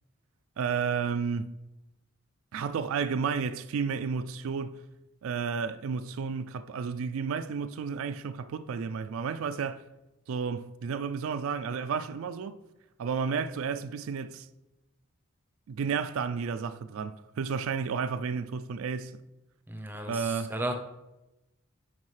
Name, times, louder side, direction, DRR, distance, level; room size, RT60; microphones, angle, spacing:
voice 1, 0.6-1.5 2.5-4.8 5.2-9.8 10.3-12.6 13.0-14.5 15.7-19.2 20.0-20.5, right 6 dB, 65° right, 0.3 m, -32 dB
voice 2, 19.7-20.7, right 1 dB, 10° right, 0.6 m, -34 dB
9.6 x 4.5 x 3.2 m
head